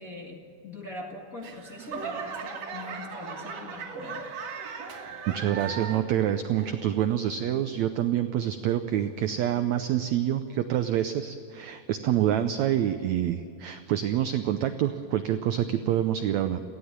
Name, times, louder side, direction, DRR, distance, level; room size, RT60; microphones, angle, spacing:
voice 1, 0.0-4.3 12.2-12.4 15.7-15.8, left 2 dB, 35° left, 0 dB, 1.6 m, -42 dB
Laughter / Clapping / Crowd, 1.4-6.2 6.5-7.1 7.6-7.7, right 5 dB, 55° right, 2.6 m, -37 dB
voice 2, 5.3-16.6, right 11 dB, 80° right, 9 dB, 1.6 m, -27 dB
18.0 x 15.5 x 9.8 m, 2.5 s
omnidirectional pair, 4.0 m